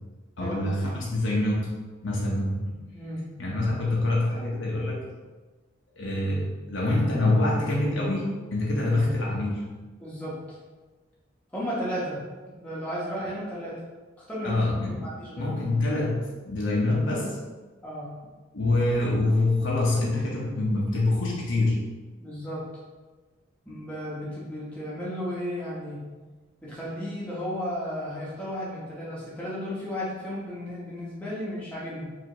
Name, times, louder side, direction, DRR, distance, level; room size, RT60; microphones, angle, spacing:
voice 1, 0.4-1.7 2.0-2.6 3.4-5.0 6.0-9.7 14.4-15.0 15.4-17.4 18.5-21.9, left 2 dB, 75° left, -4 dB, 1.0 m, -25 dB
voice 2, 2.9-3.3 10.0-10.4 11.5-12.2 12.6-13.8 14.3-14.6 14.9-15.5 17.8-18.1 22.2-22.7 23.6-26.0 26.6-32.0, equal, 5° left, -8 dB, 1.1 m, -34 dB
4.8 x 2.9 x 3.0 m, 1.3 s
head